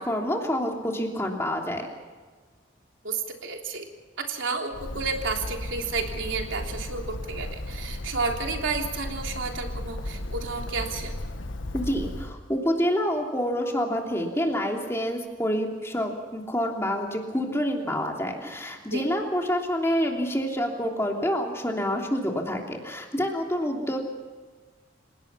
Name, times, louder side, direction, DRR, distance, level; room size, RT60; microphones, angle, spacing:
voice 1, 0.0-1.9 11.7-24.0, equal, 15° left, 1 dB, 3.2 m, -27 dB
voice 2, 3.0-3.9 4.2-11.2 18.9-19.1, right 4 dB, 85° right, 2 dB, 3.5 m, -31 dB
Bird, 4.7-12.3, left 1 dB, 85° left, 1.5 m, -35 dB
30.0 x 18.0 x 5.8 m, 1.4 s
head